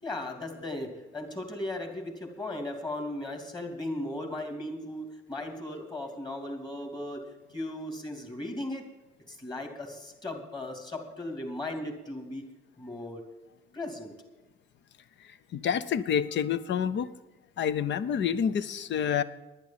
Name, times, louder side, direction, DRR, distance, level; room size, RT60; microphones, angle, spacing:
voice 1, 0.0-8.9 9.3-12.4 12.8-13.3 13.7-14.2, left 1 dB, 20° left, 4 dB, 2.9 m, -37 dB
voice 2, 15.5-17.1 17.6-19.2, left 8 dB, 65° left, 15 dB, 0.8 m, -28 dB
10.5 x 10.0 x 7.4 m, 1.1 s
cardioid pair, 90°, 20 cm